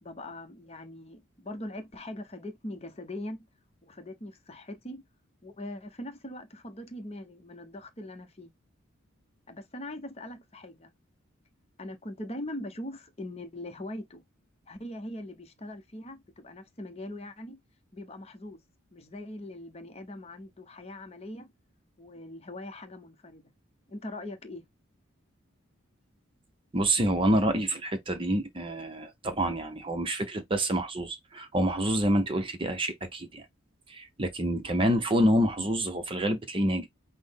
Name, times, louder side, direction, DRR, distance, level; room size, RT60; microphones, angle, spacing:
voice 1, 0.0-3.4 3.9-5.0 5.4-8.5 9.5-10.9 11.8-14.2 14.7-17.6 17.9-18.6 18.9-21.5 22.0-23.5 23.9-24.6, left 1 dB, 30° left, 0.7 m, -41 dB
voice 2, 26.7-33.4 33.9-36.9, right 1 dB, 25° right, 0.6 m, -27 dB
5.9 x 2.1 x 3.5 m
head